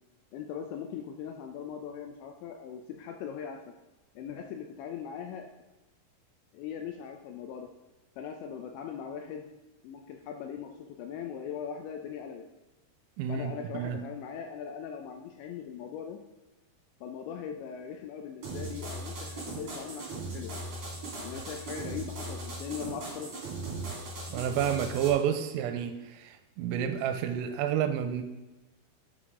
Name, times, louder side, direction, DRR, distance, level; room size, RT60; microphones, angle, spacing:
voice 1, 0.3-3.7 4.2-5.5 6.5-7.7 8.2-9.5 9.8-12.4 13.3-16.2 17.0-20.5 21.2-23.4, left 7 dB, 80° left, 4 dB, 2.6 m, -40 dB
voice 2, 13.2-14.0 24.3-28.2, right 9 dB, 90° right, 8 dB, 3.3 m, -30 dB
sound 1, 18.4-25.1, right 2 dB, 35° right, 3.8 m, -38 dB
11.5 x 8.1 x 3.7 m, 1.1 s
omnidirectional pair, 6.0 m